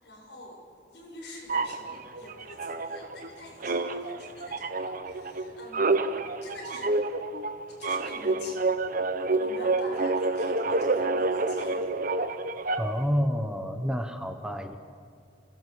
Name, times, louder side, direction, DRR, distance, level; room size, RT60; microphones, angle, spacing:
voice 1, 0.0-7.0 7.7-8.7 9.1-11.9, left 1 dB, 70° left, -1 dB, 7.4 m, -45 dB
sound 1, 1.5-3.3 3.6-13.1, right 3 dB, 50° right, 1.1 m, -28 dB
voice 2, 12.8-14.8, equal, 5° right, 7 dB, 1.0 m, -29 dB
27.5 x 18.0 x 8.5 m, 2.2 s
head